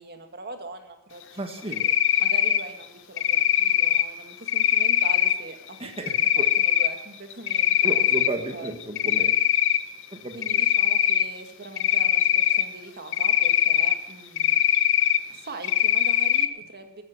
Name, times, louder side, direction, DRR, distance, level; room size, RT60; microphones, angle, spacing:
voice 1, 0.0-8.1 8.5-8.8 10.3-14.6 15.3-17.0, right 2 dB, 50° right, 5 dB, 2.0 m, -42 dB
voice 2, 1.4-1.8 5.8-6.5 7.8-9.3 10.1-10.6, right 2 dB, 25° right, 4 dB, 1.5 m, -33 dB
Cricket, 1.7-2.6 3.2-4.0 4.5-5.3 6.1-6.9 7.3-8.3 8.7-9.8 10.4-11.2 11.8-12.6 13.1-13.9 14.4-15.2 15.6-16.5, left 10 dB, 60° left, 0.9 m, -21 dB
13.5 x 11.5 x 7.9 m, 0.87 s
head